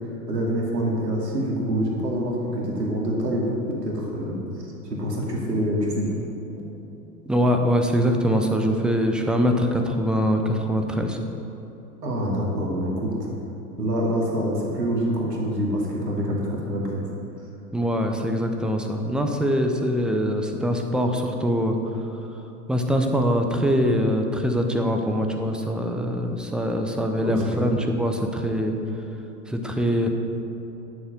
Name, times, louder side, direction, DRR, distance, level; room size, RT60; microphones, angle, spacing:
voice 1, 0.3-4.4 4.8-6.1 6.6-6.7 12.0-13.3 13.8-17.0 27.2-27.7, equal, 75° right, -2 dB, 2.5 m, -26 dB
voice 2, 7.3-11.2 17.7-21.8 22.7-28.8 29.5-30.1, equal, ahead, 4 dB, 0.5 m, -23 dB
11.0 x 7.0 x 6.5 m, 3.0 s
figure-of-eight pair, 85°, 49 cm